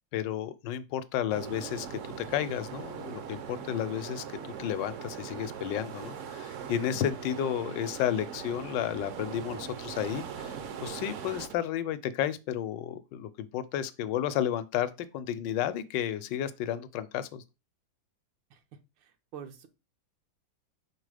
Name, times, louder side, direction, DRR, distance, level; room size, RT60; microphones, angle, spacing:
voice 1, 0.1-2.0 2.3-10.5 10.8-17.4, left 10 dB, 80° left, 1.3 m, -32 dB
sound 1, 1.3-11.5, right 7 dB, 65° right, 0.7 m, -40 dB
voice 2, 19.0-19.7, right 8 dB, 85° right, 1.5 m, -46 dB
5.2 x 4.0 x 4.9 m
omnidirectional pair, 2.0 m